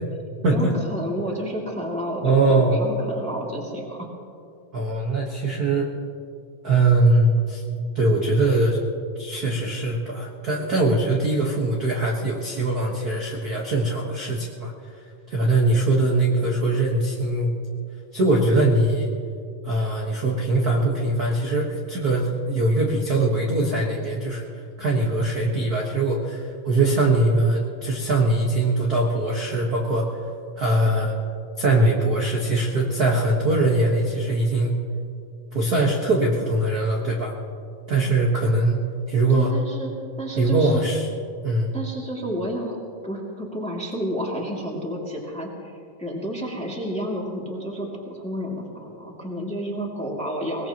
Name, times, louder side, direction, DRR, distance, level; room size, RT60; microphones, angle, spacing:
voice 1, 0.5-2.3 2.7-4.1 39.3-39.9 40.2-40.8 41.7-42.8 43.0-45.5 46.0-50.7, equal, 5° left, -3 dB, 1.7 m, -30 dB
voice 2, 2.2-2.8 4.7-5.9 6.6-7.6 7.9-8.8 9.2-14.7 15.3-17.5 18.1-19.1 19.6-24.4 24.8-30.2 30.6-31.1 31.6-34.7 35.5-37.3 37.9-38.8 39.1-39.5 40.4-41.1 41.4-41.7, right 2 dB, 45° right, -2 dB, 1.2 m, -21 dB
23.0 x 19.5 x 3.0 m, 2.4 s
omnidirectional pair, 3.8 m